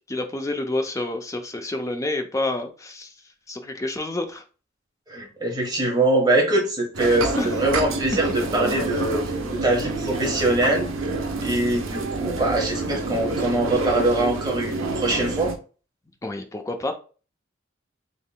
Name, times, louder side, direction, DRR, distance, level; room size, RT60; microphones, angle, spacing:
voice 1, 0.1-3.1 3.5-4.4 7.4-7.5 16.2-16.9, left 2 dB, 15° left, 5 dB, 0.5 m, -28 dB
voice 2, 5.1-9.2 9.5-10.9 11.4-15.5, right 2 dB, 20° right, -1 dB, 1.2 m, -23 dB
sound 1, 6.9-15.6, right 3 dB, 85° right, 0.7 m, -28 dB
3.7 x 3.1 x 2.3 m, 0.36 s
head